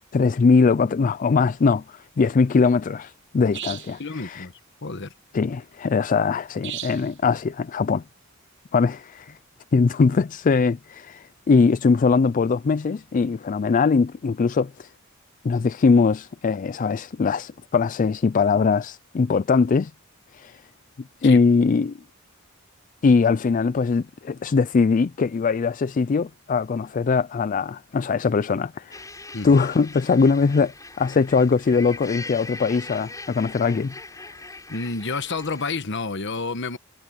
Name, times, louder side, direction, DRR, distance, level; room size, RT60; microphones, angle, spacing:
voice 1, 0.1-4.5 5.3-8.0 8.7-9.3 9.7-14.9 15.4-19.9 20.3-20.6 21.2-22.0 23.0-29.0 29.4-34.3, left 4 dB, 40° left, 0.4 m, -21 dB
sound 1, 3.5-4.0 6.6-7.1, right 11 dB, 60° right, 1.0 m, -35 dB
voice 2, 4.0-4.5 4.8-5.1 21.2-21.4 29.3-29.6 34.7-36.8, left 3 dB, 60° left, 1.3 m, -29 dB
sound 2, 28.9-35.8, left 3 dB, 15° left, 7.1 m, -41 dB
head